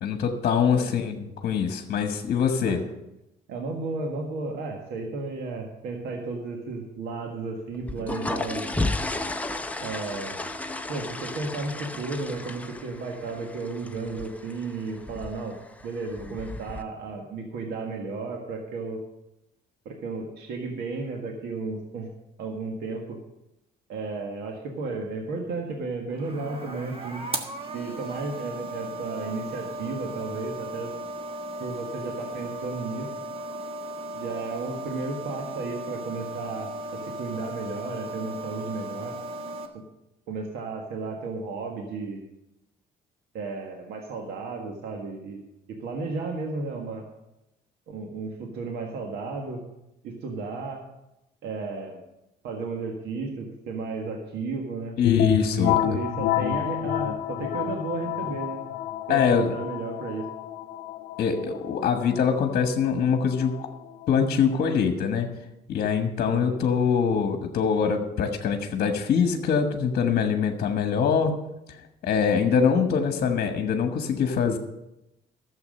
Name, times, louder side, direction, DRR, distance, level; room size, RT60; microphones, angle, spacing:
voice 1, 0.0-2.8 55.0-55.8 59.1-59.5 61.2-63.5 64.1-65.3 65.7-71.3 72.0-74.6, left 6 dB, 55° left, 5 dB, 1.3 m, -23 dB
voice 2, 3.5-8.7 9.8-10.5 10.9-15.6 15.8-19.0 19.8-22.1 22.4-23.2 23.9-27.2 27.7-30.9 31.6-33.1 34.1-39.2 40.3-42.2 43.3-47.0 47.9-49.6 50.0-50.8 51.4-52.0 52.4-54.9 55.6-58.6 59.1-60.3 66.3-66.6, right 3 dB, 75° right, 2 dB, 1.7 m, -33 dB
sound 1, 7.8-16.8, left 2 dB, 10° left, 0.7 m, -34 dB
sound 2, 26.1-39.7, right 1 dB, 35° right, 1.5 m, -36 dB
sound 3, 55.0-64.6, left 11 dB, 85° left, 0.8 m, -29 dB
12.5 x 7.4 x 6.5 m, 0.90 s
cardioid pair, 110°, 17 cm